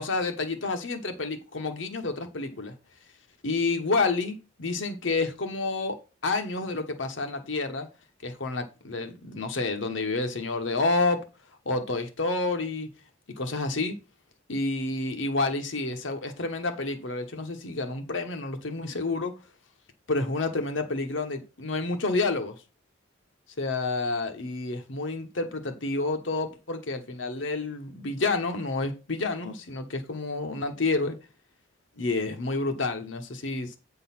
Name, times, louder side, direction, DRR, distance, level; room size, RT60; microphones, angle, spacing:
voice 1, 0.0-2.7 3.4-7.9 8.2-11.2 11.7-12.9 13.4-14.0 14.5-19.4 20.1-22.5 23.6-31.2 32.0-33.8, left 3 dB, 70° left, 1.0 m, -29 dB
8.4 x 3.8 x 5.7 m
head